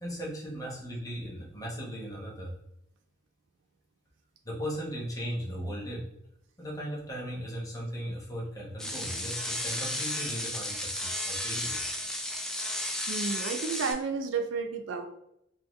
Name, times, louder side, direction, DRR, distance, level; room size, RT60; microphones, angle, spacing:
voice 1, 0.0-2.5 4.4-6.1 6.6-11.8, equal, 20° left, -3 dB, 0.9 m, -37 dB
sound 1, 8.8-13.9, left 1 dB, 5° left, 0.3 m, -33 dB
voice 2, 13.1-15.1, right 5 dB, 70° right, 6 dB, 0.4 m, -32 dB
3.7 x 2.2 x 3.0 m, 0.80 s
head